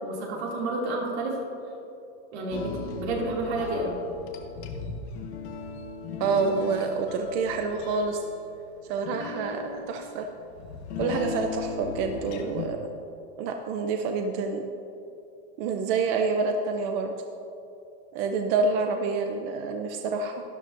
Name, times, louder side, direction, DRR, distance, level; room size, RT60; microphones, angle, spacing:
voice 1, 0.0-1.4 2.3-4.0, right 2 dB, 75° right, -2 dB, 2.6 m, -30 dB
sound 1, 2.5-12.7, left 4 dB, 85° left, 1.3 m, -37 dB
voice 2, 6.2-8.2 8.9-10.3 11.0-12.8 13.4-14.6 15.6-17.1 18.1-20.4, right 4 dB, 40° right, 4 dB, 0.5 m, -27 dB
12.5 x 11.5 x 2.6 m, 2.7 s
supercardioid pair, 175°, 32 cm